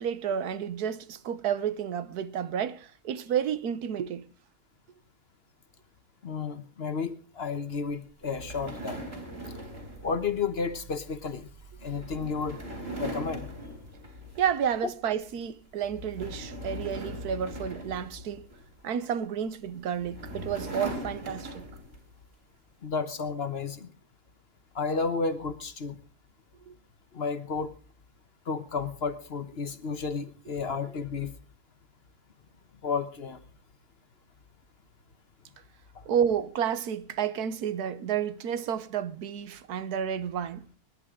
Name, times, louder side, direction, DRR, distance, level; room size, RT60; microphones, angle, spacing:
voice 1, 0.0-4.3 14.4-18.5 18.8-21.7 26.7-26.8 36.1-40.6, right 8 dB, 90° right, 1.4 m, -31 dB
voice 2, 6.2-9.0 10.0-11.5 11.8-12.6 13.0-13.5 22.8-23.9 24.7-26.0 27.1-27.7 28.5-31.3 32.8-33.4 35.9-36.0, left 5 dB, 45° left, 1.2 m, -32 dB
sound 1, 8.2-14.8 15.1-15.4 15.8-18.8 19.6-22.1, right 1 dB, 40° right, 4.0 m, -40 dB
25.0 x 11.0 x 3.7 m
omnidirectional pair, 1.6 m